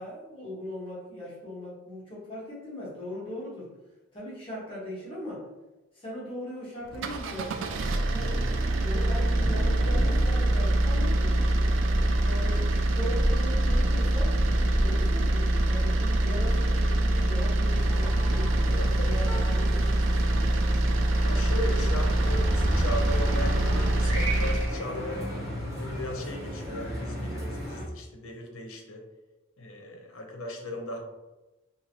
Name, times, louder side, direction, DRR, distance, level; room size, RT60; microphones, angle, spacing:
voice 1, 0.0-3.7 4.1-5.4 5.9-8.4 8.8-11.8 12.2-12.6 13.0-14.3 14.8-18.7 19.0-20.8, left 1 dB, 25° left, -8 dB, 1.0 m, -39 dB
sound 1, 6.9-24.7, right 1 dB, 60° right, 0.3 m, -25 dB
Thunder, 8.1-20.9, equal, 55° left, 1.1 m, -36 dB
sound 2, 17.7-27.9, equal, 15° right, 0.6 m, -34 dB
voice 2, 18.7-19.2 21.2-25.2 25.7-29.0 29.6-31.0, left 1 dB, 80° left, 2 dB, 0.6 m, -37 dB
2.8 x 2.5 x 2.8 m, 1.0 s
head